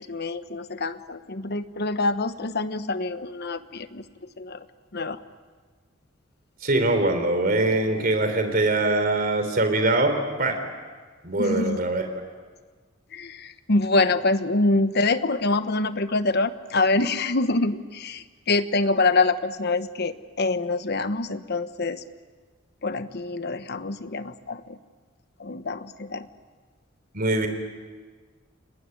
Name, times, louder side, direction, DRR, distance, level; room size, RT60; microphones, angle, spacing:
voice 1, 0.0-4.6 4.9-5.2 11.4-11.8 13.1-22.0 22.8-24.8 25.4-26.3, left 3 dB, 55° left, 11 dB, 1.1 m, -25 dB
voice 2, 6.6-10.6 11.2-12.1 27.1-27.5, right 2 dB, 45° right, 7 dB, 3.7 m, -23 dB
30.0 x 19.5 x 9.9 m, 1.5 s
head